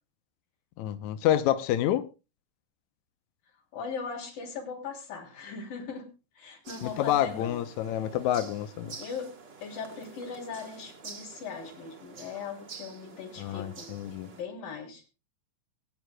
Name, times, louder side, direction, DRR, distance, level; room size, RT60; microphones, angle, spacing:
voice 1, 0.8-2.0 6.8-9.0 13.4-14.3, left 12 dB, 70° left, 9 dB, 2.0 m, -28 dB
voice 2, 3.7-6.1 6.3-7.6 9.0-9.3 9.6-13.9 14.3-15.1, left 5 dB, 85° left, 1 dB, 4.9 m, -39 dB
sound 1, 6.6-14.4, right 5 dB, 40° right, 1.8 m, -48 dB
23.0 x 9.3 x 2.3 m, 0.28 s
omnidirectional pair, 3.9 m